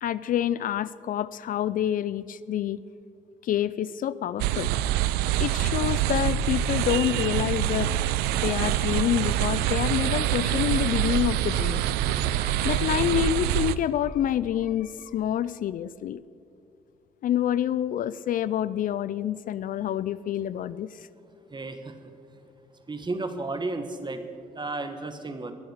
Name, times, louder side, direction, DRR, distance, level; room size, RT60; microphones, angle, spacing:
voice 1, 0.0-2.8 3.4-4.7 5.4-7.9 8.4-16.2 17.2-21.0, left 11 dB, 60° left, 17 dB, 0.4 m, -27 dB
sound 1, 4.4-13.7, right 12 dB, 85° right, 0.5 m, -25 dB
voice 2, 21.5-21.9 22.9-24.2 24.6-25.5, right 3 dB, 30° right, 8 dB, 1.7 m, -33 dB
21.5 x 7.8 x 6.7 m, 2.5 s
supercardioid pair, 60°, 16 cm